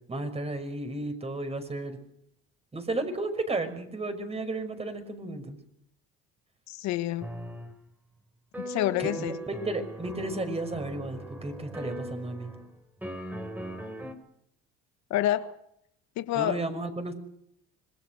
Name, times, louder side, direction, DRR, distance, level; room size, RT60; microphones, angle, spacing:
voice 1, 0.1-2.0 2.7-5.6 9.0-12.5 16.3-17.1, right 2 dB, 20° right, 5.7 m, -33 dB
voice 2, 6.7-7.3 8.6-9.4 15.1-15.5 16.2-16.6, left 13 dB, 70° left, 1.4 m, -28 dB
sound 1, 7.2-7.8 8.5-12.7 13.0-14.1, right 1 dB, 5° right, 4.1 m, -39 dB
26.5 x 21.5 x 6.5 m
supercardioid pair, 100°, 29 cm